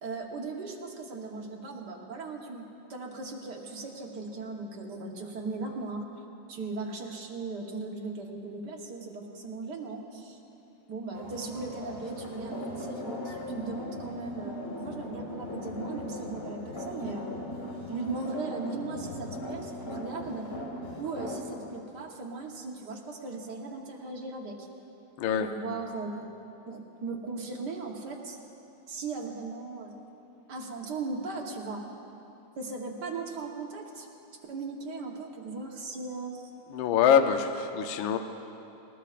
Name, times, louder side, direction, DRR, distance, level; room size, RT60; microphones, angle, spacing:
voice 1, 0.0-2.6 2.9-6.0 6.5-10.4 10.9-17.3 17.9-20.5 21.0-24.7 25.4-26.3 26.7-28.4 28.9-30.0 30.5-31.8 32.5-36.4, right 3 dB, 55° right, 0 dB, 1.7 m, -38 dB
sound 1, 11.1-21.9, left 1 dB, 30° left, 1.6 m, -38 dB
voice 2, 36.7-38.2, left 8 dB, 70° left, 6 dB, 1.4 m, -24 dB
20.0 x 18.5 x 2.5 m, 2.8 s
omnidirectional pair, 2.4 m